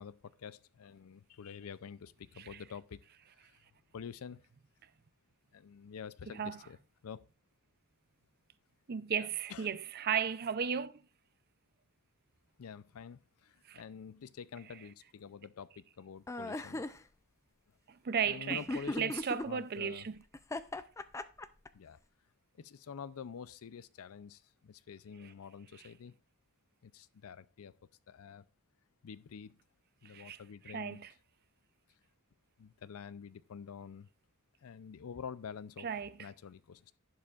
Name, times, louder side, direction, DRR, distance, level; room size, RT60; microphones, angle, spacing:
voice 1, 0.0-3.0 3.4-3.6 3.9-4.4 5.5-7.2 9.1-9.8 12.6-16.8 18.2-20.1 21.7-22.0 22.6-26.2 26.8-27.7 28.1-28.4 29.0-29.6 30.0-31.0 32.6-34.1 34.6-37.0, left 6 dB, 75° left, 0.4 m, -48 dB
voice 2, 8.9-10.9 13.7-13.8 17.9-20.2 25.2-25.3 30.0-30.4 30.7-31.1 35.8-36.3, right 7 dB, 45° right, 0.5 m, -35 dB
sound 1, 16.3-17.0 18.5-19.4 20.3-21.7, left 2 dB, 15° left, 0.3 m, -37 dB
11.0 x 10.5 x 2.4 m
head